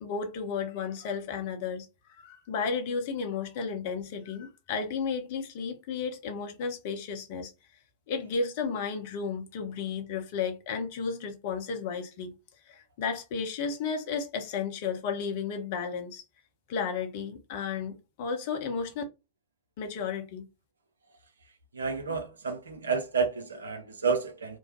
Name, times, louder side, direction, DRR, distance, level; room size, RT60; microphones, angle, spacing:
voice 1, 0.0-1.9 2.2-7.5 8.1-12.4 12.7-16.2 16.7-19.0 19.8-20.5, left 5 dB, 50° left, 0.7 m, -33 dB
voice 2, 21.7-24.6, right 5 dB, 70° right, 0.6 m, -30 dB
3.0 x 2.1 x 3.0 m
figure-of-eight pair, 90°, 0 cm